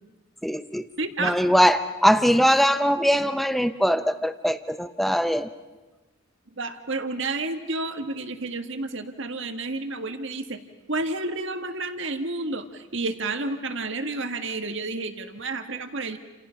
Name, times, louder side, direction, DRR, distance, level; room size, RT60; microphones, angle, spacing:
voice 1, 0.4-0.9 1.2-5.5, equal, ahead, 10 dB, 0.8 m, -21 dB
voice 2, 1.0-1.4 6.6-10.6 10.9-16.2, right 2 dB, 55° right, 7 dB, 1.8 m, -30 dB
29.5 x 28.0 x 5.8 m, 1.2 s
head